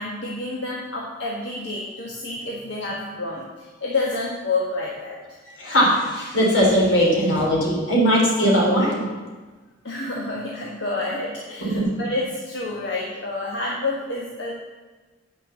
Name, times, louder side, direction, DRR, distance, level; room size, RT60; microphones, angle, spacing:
voice 1, 0.0-5.2 9.8-14.5, left 2 dB, 60° left, -4 dB, 1.5 m, -29 dB
voice 2, 5.6-9.1 11.6-11.9, equal, 80° left, -3 dB, 3.6 m, -19 dB
8.8 x 6.4 x 7.0 m, 1.3 s
head